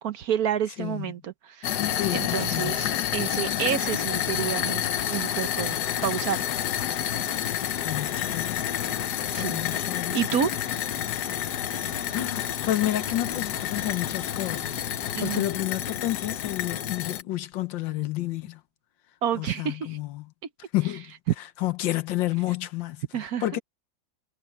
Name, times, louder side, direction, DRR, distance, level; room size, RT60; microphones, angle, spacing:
voice 1, 0.0-4.8 5.1-6.5 9.3-9.6 10.1-10.5 15.1-15.4 19.2-20.0 23.1-23.6, right 9 dB, 60° right, 1.2 m, -29 dB
sound 1, 1.6-17.2, left 11 dB, 65° left, 1.4 m, -29 dB
voice 2, 1.9-2.8 7.8-8.6 9.3-10.2 12.1-14.8 15.2-18.6 19.3-20.3 20.7-21.1 21.6-23.6, left 15 dB, 85° left, 1.6 m, -30 dB
sound 2, 4.3-15.4, left 5 dB, 45° left, 1.0 m, -44 dB
omnidirectional pair, 2.0 m